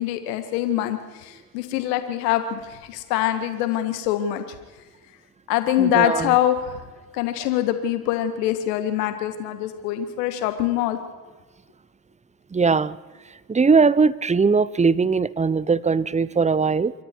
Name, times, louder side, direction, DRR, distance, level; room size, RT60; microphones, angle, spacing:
voice 1, 0.0-4.4 5.5-6.8 7.1-11.0, left 12 dB, 75° left, 8 dB, 2.0 m, -24 dB
voice 2, 5.8-6.3 12.5-13.0 13.5-16.9, right 4 dB, 15° right, 19 dB, 0.9 m, -20 dB
28.5 x 23.5 x 4.7 m, 1.3 s
hypercardioid pair, 65°, 48 cm